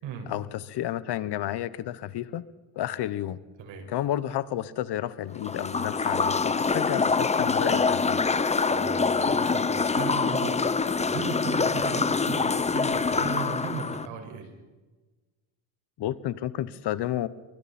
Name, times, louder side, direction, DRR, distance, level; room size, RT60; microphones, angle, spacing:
voice 1, 0.3-2.4 2.7-3.4 3.9-8.2 16.0-17.3, left 12 dB, 60° left, 16 dB, 1.2 m, -31 dB
sound 1, 5.4-14.1, left 4 dB, 15° left, 0.7 m, -25 dB
voice 2, 8.7-10.6 11.0-14.5, right 6 dB, 70° right, 4 dB, 5.5 m, -36 dB
27.0 x 24.0 x 4.4 m, 1.3 s
cardioid pair, 115°, 47 cm